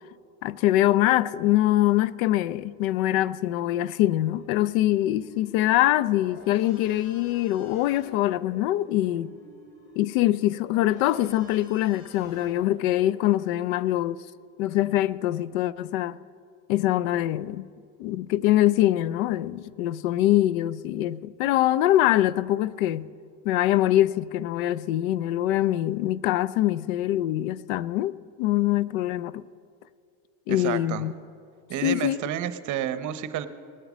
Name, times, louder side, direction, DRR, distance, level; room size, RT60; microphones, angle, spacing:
voice 1, 0.4-9.3 10.0-14.2 14.6-16.2 16.7-17.7 18.0-23.1 23.4-29.4 30.5-31.1 31.8-32.2, left 14 dB, 85° left, 0.5 m, -24 dB
sound 1, 4.2-13.4, left 1 dB, 55° left, 2.6 m, -50 dB
voice 2, 30.5-31.0 31.7-33.5, right 10 dB, 45° right, 0.8 m, -30 dB
19.0 x 7.9 x 6.2 m
supercardioid pair, 110°, 40 cm